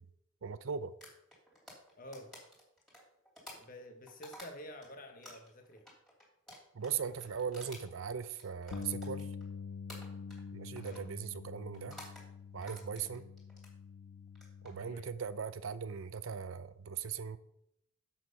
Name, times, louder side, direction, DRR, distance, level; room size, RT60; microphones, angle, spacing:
voice 1, 0.4-0.9 6.7-9.3 10.5-12.0 12.5-13.2 14.6-17.4, right 6 dB, 80° right, 14 dB, 0.6 m, -39 dB
sound 1, 1.0-4.9 5.2-9.5 9.9-10.5 10.8-11.1 11.7-12.3 12.6-13.7 14.3-14.7, equal, 5° left, 2.8 m, -53 dB
voice 2, 2.0-2.3 3.5-5.8 10.8-11.0 14.8-15.1, equal, 40° left, 5 dB, 1.3 m, -49 dB
Bass guitar, 8.7-15.0, left 5 dB, 75° left, 0.4 m, -46 dB
7.6 x 6.5 x 5.4 m, 0.78 s
head